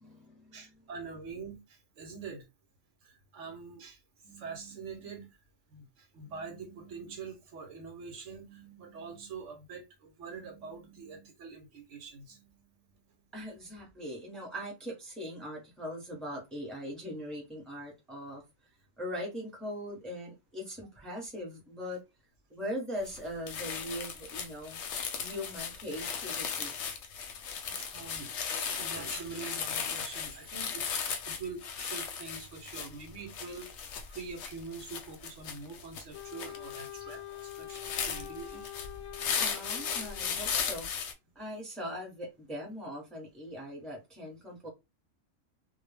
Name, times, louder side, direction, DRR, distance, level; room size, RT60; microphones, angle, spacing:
voice 1, 0.0-0.8 13.3-18.4 19.0-22.0 22.5-24.8 25.2-26.7 39.4-41.0 41.3-44.7, equal, ahead, 0.8 m, -40 dB
voice 2, 0.5-2.4 3.0-5.3 5.7-13.0 27.6-30.8 31.3-33.7 34.1-38.7, right 4 dB, 70° right, 1.0 m, -45 dB
sound 1, 23.0-23.2 23.5-41.1, left 6 dB, 65° left, 0.8 m, -37 dB
Wind instrument woodwind instrument, 36.1-40.7, left 13 dB, 90° left, 1.0 m, -45 dB
2.3 x 2.1 x 3.2 m
omnidirectional pair, 1.4 m